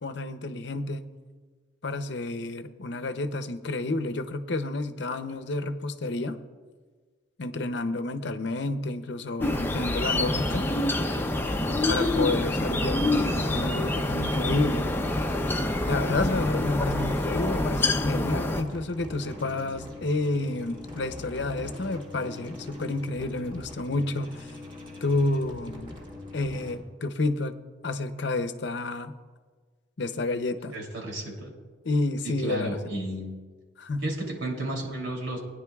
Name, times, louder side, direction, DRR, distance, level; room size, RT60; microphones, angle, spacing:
voice 1, 0.0-1.1 1.8-6.4 7.4-10.7 11.9-14.9 15.9-24.5 25.0-26.0 26.3-27.5 27.8-29.1 30.0-30.8 31.8-32.8 33.8-34.1, left 2 dB, 65° left, 9 dB, 0.7 m, -30 dB
sound 1, 9.4-18.6, left 2 dB, 10° left, 0.5 m, -26 dB
sound 2, 10.3-26.7, left 2 dB, 25° right, 1.6 m, -42 dB
voice 2, 30.7-31.5 32.2-33.3 34.0-35.4, right 1 dB, 85° right, 0 dB, 2.9 m, -33 dB
20.0 x 9.9 x 2.3 m, 1.4 s
head